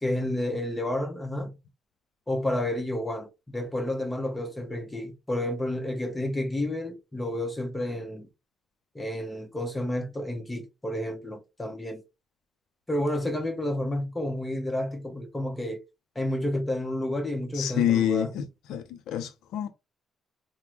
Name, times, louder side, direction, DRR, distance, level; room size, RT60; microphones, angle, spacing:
voice 1, 0.0-1.6 2.3-8.3 8.9-12.0 12.9-15.8 16.2-18.3, left 1 dB, 15° left, 0.8 m, -30 dB
voice 2, 17.5-18.4 18.7-19.7, left 11 dB, 85° left, 0.4 m, -27 dB
3.4 x 2.1 x 2.9 m
cardioid pair, 90°, 0 cm